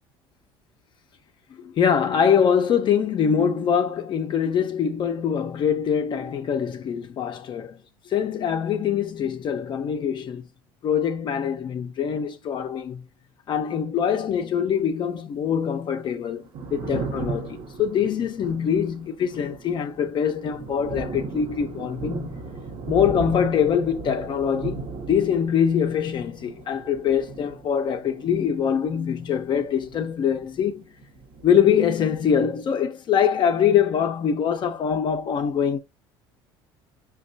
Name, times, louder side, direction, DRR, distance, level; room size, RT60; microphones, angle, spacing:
voice 1, 1.6-7.8 8.1-10.5 10.8-13.0 13.5-22.4 22.9-30.8 31.4-35.8, left 8 dB, 45° left, 0.5 m, -23 dB
Thunder, 16.3-30.8 31.0-32.3, right 4 dB, 50° right, 0.8 m, -37 dB
5.1 x 2.2 x 2.6 m
supercardioid pair, 85°, 11 cm